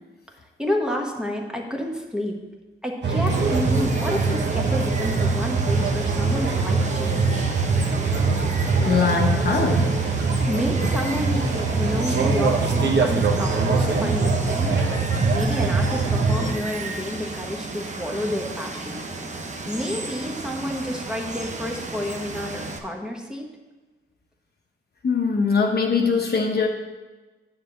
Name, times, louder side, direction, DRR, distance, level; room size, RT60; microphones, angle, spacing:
voice 1, 0.6-2.4 2.8-7.6 10.2-11.5 11.7-14.7 15.3-19.1 19.7-23.5, left 1 dB, 5° right, 1 dB, 1.2 m, -29 dB
sound 1, 3.0-16.5, right 4 dB, 55° right, 1.1 m, -22 dB
Water, 3.3-22.8, right 3 dB, 35° right, 0.8 m, -34 dB
voice 2, 8.8-9.9 25.0-26.7, left 5 dB, 50° left, 1 dB, 0.8 m, -21 dB
9.3 x 3.9 x 6.7 m, 1.2 s
wide cardioid pair, 110°, 21 cm